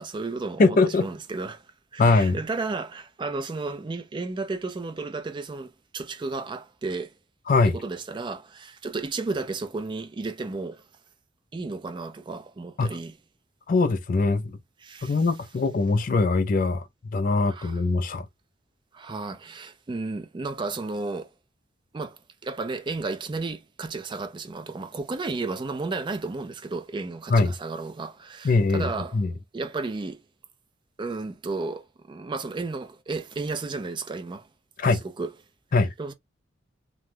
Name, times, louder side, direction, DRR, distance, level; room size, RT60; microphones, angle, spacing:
voice 1, 0.0-1.6 1.9-7.1 7.7-10.8 11.5-13.1 14.8-15.1 17.5-17.8 18.9-21.3 21.9-29.2 29.5-30.2 31.0-34.5 35.2-35.3 36.0-36.1, right 3 dB, 25° right, 0.3 m, -33 dB
voice 2, 0.6-1.1 2.0-2.4 7.5-7.8 12.8-13.0 13.7-14.6 15.0-18.3 27.3-27.6 28.4-29.3 34.8-35.0 35.7-35.9, left 3 dB, 45° left, 0.4 m, -22 dB
2.5 x 2.2 x 3.1 m
head